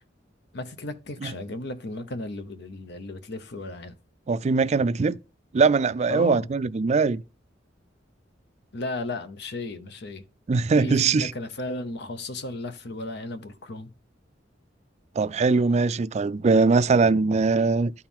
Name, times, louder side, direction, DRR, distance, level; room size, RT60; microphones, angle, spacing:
voice 1, 0.5-3.9 6.1-6.5 8.7-10.2 10.7-13.9, left 2 dB, 65° left, 0.9 m, -35 dB
voice 2, 4.3-5.2 5.5-7.2 10.5-11.3 15.2-17.9, right 4 dB, 40° right, 0.3 m, -21 dB
12.5 x 4.5 x 3.7 m
head